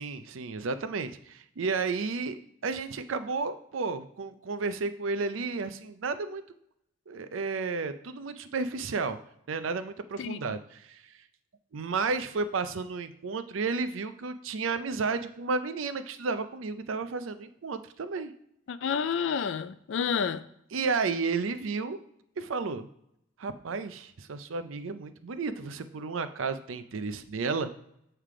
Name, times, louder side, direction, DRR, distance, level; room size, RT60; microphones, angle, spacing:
voice 1, 0.0-2.4 2.6-6.4 7.1-9.2 9.5-11.0 11.7-18.3 20.7-22.0 22.4-22.9 23.4-27.7, right 4 dB, 90° right, 0.5 m, -32 dB
voice 2, 10.2-10.5 18.7-20.4, left 6 dB, 70° left, 0.4 m, -30 dB
7.5 x 3.4 x 4.8 m
head